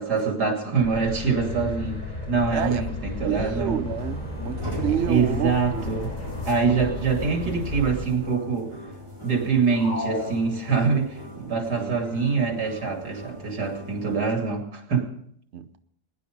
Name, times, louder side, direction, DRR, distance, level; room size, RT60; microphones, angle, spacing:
voice 1, 0.0-2.0 2.3-3.8 4.9-6.1 6.5-8.7 9.2-15.1, right 5 dB, 90° right, 2 dB, 3.3 m, -25 dB
sound 1, 0.8-8.1, left 2 dB, 25° left, 4.4 m, -33 dB
voice 2, 3.2-5.9 11.7-11.9 15.5-15.8, right 9 dB, 50° right, 9 dB, 1.0 m, -29 dB
sound 2, 4.0-14.2, equal, 15° right, 4.5 m, -40 dB
sound 3, 9.7-11.2, left 2 dB, 60° left, 4.2 m, -33 dB
21.0 x 10.5 x 5.2 m, 0.67 s
omnidirectional pair, 1.7 m